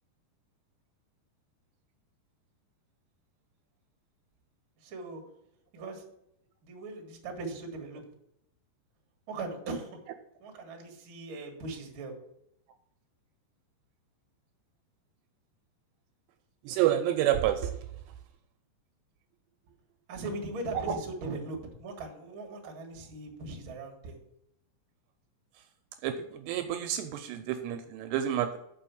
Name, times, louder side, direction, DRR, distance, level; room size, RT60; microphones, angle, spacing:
voice 1, 4.8-5.2 5.7-6.0 6.6-8.0 9.3-10.0 10.4-12.1 20.1-24.2, right 2 dB, 60° right, 2 dB, 1.3 m, -39 dB
voice 2, 16.7-17.7 20.9-21.0 26.0-28.6, right 11 dB, 80° right, 8 dB, 2.6 m, -29 dB
6.9 x 6.1 x 7.0 m, 0.78 s
omnidirectional pair, 5.2 m